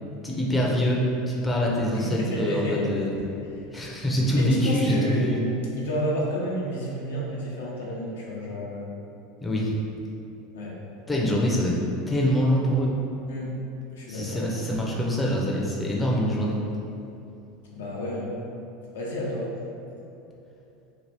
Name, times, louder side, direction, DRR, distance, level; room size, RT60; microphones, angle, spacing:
voice 1, 0.2-3.1 3.7-5.4 9.4-9.7 11.1-11.8 12.1-12.9 14.1-16.6, equal, 10° left, -4 dB, 0.6 m, -24 dB
voice 2, 1.9-2.9 4.3-5.5 5.8-8.9 10.5-10.8 13.3-13.5 13.9-14.4 17.7-18.3 18.9-19.5, equal, 80° left, -4 dB, 0.6 m, -30 dB
2.8 x 2.4 x 3.3 m, 2.8 s
hypercardioid pair, 90°, 0 cm